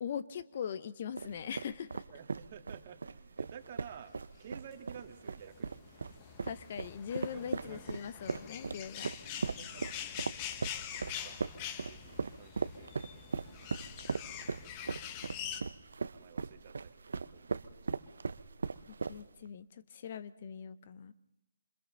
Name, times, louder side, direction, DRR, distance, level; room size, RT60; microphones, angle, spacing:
voice 1, 0.0-2.0 6.4-9.1 18.9-21.1, left 8 dB, 50° left, 14 dB, 0.9 m, -41 dB
sound 1, 1.2-19.5, right 4 dB, 75° right, 0.9 m, -39 dB
voice 2, 2.1-5.8 7.3-8.4 9.6-9.9 11.1-13.4 14.3-14.8 16.0-18.1, right 8 dB, 45° right, 6 dB, 1.9 m, -53 dB
sound 2, 4.5-15.6, left 10 dB, 30° left, 1.2 m, -45 dB
27.5 x 25.5 x 4.0 m, 0.90 s
figure-of-eight pair, 145°, 0 cm